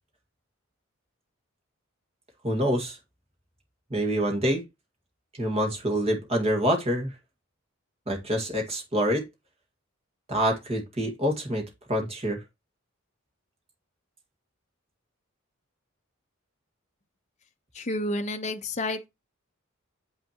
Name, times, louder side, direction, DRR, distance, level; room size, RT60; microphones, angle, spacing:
voice 1, 2.4-3.0 3.9-4.6 5.4-7.1 8.1-9.2 10.3-12.4, equal, 30° right, 1.9 m, -26 dB
voice 2, 17.7-19.1, left 1 dB, 35° left, 0.9 m, -30 dB
7.6 x 5.9 x 2.9 m
head